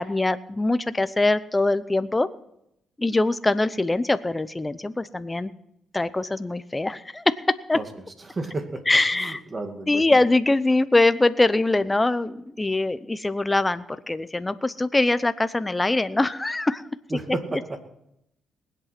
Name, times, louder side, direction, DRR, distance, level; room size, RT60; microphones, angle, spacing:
voice 1, 0.0-2.3 3.0-5.5 5.9-7.8 8.9-9.4 9.9-16.9 17.5-17.8, left 2 dB, 15° left, 13 dB, 0.7 m, -23 dB
voice 2, 8.2-8.9 9.1-10.0 17.1-17.8, right 2 dB, 30° right, 6 dB, 2.1 m, -32 dB
20.0 x 8.3 x 6.0 m, 0.78 s
cardioid pair, 90°, 0 cm